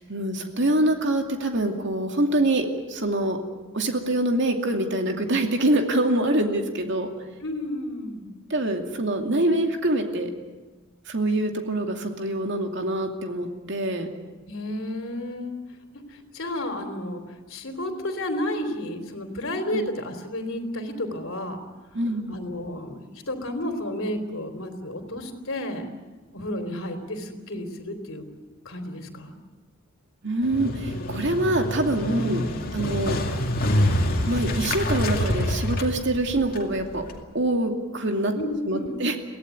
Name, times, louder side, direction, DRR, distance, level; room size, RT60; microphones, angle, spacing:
voice 1, 0.0-3.4 3.7-7.1 8.5-10.3 11.1-14.1 19.7-19.8 21.9-22.4 30.2-32.4 32.7-33.2 34.3-37.0 37.3-38.3 38.7-39.2, right 1 dB, 55° right, 4 dB, 2.5 m, -25 dB
voice 2, 7.4-8.3 14.4-15.6 15.9-17.2 17.5-21.6 22.3-25.9 26.3-28.2 28.6-29.3 32.2-32.4 38.3-39.0, left 1 dB, 65° left, 6 dB, 3.4 m, -32 dB
Motorcycle, 30.4-37.2, left 1 dB, 45° left, 2.4 m, -26 dB
23.5 x 17.5 x 9.5 m, 1.3 s
head